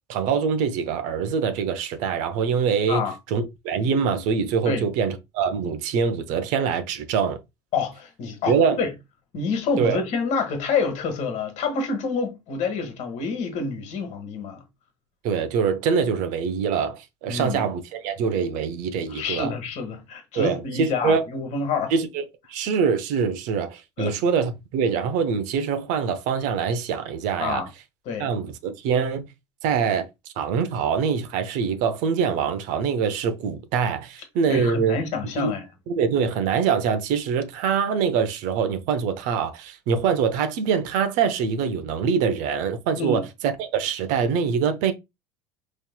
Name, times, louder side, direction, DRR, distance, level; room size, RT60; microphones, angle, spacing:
voice 1, 0.1-3.0 3.3-7.4 8.5-8.8 9.8-10.0 15.2-19.5 20.3-21.3 21.9-22.2 22.5-27.6 28.2-29.3 29.6-30.1 30.4-35.0 35.4-35.5 35.9-44.9, right 6 dB, 55° right, 0.7 m, -24 dB
voice 2, 7.7-8.9 9.3-14.6 17.3-17.6 19.1-21.9 24.0-24.1 27.4-27.7 28.0-28.3 34.5-35.6 43.0-43.3, left 4 dB, 50° left, 1.5 m, -27 dB
5.4 x 3.1 x 2.2 m
hypercardioid pair, 75°, 15 cm